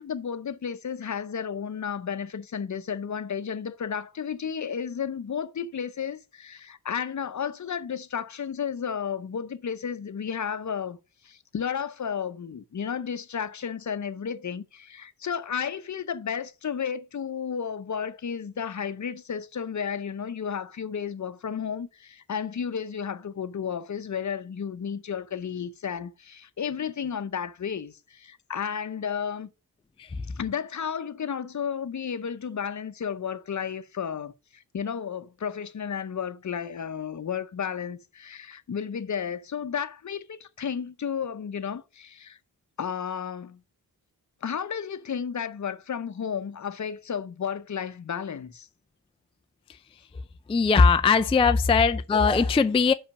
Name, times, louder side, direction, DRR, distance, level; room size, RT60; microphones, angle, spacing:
voice 1, 0.0-11.0 11.2-29.5 30.3-42.4 42.8-43.6 44.4-48.7 51.4-51.5, left 7 dB, 50° left, 0.7 m, -33 dB
voice 2, 50.5-52.9, left 5 dB, 15° left, 0.3 m, -20 dB
5.7 x 5.6 x 5.3 m
wide cardioid pair, 140°, 37 cm